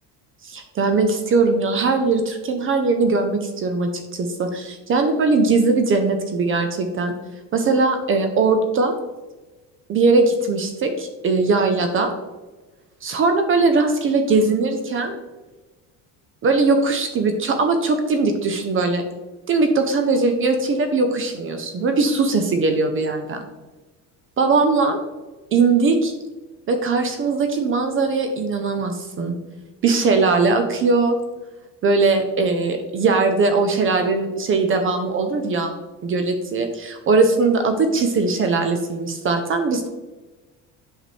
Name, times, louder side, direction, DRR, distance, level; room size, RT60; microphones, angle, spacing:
voice 1, 0.4-7.1 7.5-8.9 9.9-12.1 13.0-15.1 16.4-19.0 19.5-23.4 24.4-25.0 25.5-26.1 26.7-29.4 29.8-31.2 31.8-35.8 36.0-39.9, right 3 dB, 35° right, 6 dB, 0.7 m, -20 dB
8.2 x 5.7 x 3.2 m, 1.2 s
cardioid pair, 150°, 39 cm